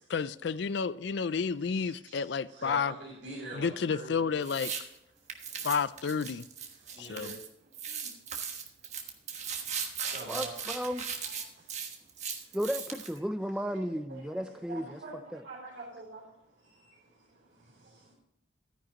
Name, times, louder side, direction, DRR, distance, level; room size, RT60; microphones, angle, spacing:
voice 1, 0.1-2.9 3.5-4.7 5.6-6.5 7.0-7.4, left 5 dB, 60° left, 16 dB, 0.4 m, -31 dB
voice 2, 1.7-2.2 2.5-4.1 5.4-5.6 6.7-7.4 7.9-8.0 10.0-10.6 11.2-11.6 13.9-14.2 14.5-16.2 16.6-18.1, right 2 dB, 60° right, -6 dB, 3.4 m, -45 dB
sound 1, 4.4-4.8 5.3-7.5 7.7-13.2, right 7 dB, 35° right, 1.3 m, -38 dB
voice 3, 10.3-11.0 12.5-15.0 15.3-15.4, equal, 5° right, 10 dB, 0.5 m, -34 dB
13.5 x 10.0 x 3.0 m, 0.83 s
head